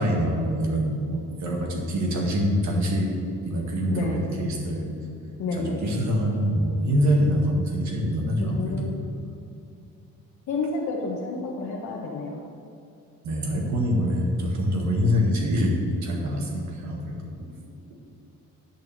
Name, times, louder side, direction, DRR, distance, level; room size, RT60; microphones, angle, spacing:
voice 1, 0.0-3.1 3.4-4.9 5.5-8.9 13.2-17.3, equal, 65° right, 0 dB, 1.9 m, -25 dB
voice 2, 3.9-4.2 5.4-5.8 8.4-9.0 10.5-12.4, left 3 dB, 65° left, -5 dB, 1.4 m, -30 dB
10.5 x 4.5 x 7.4 m, 2.5 s
cardioid pair, 90°, 30 cm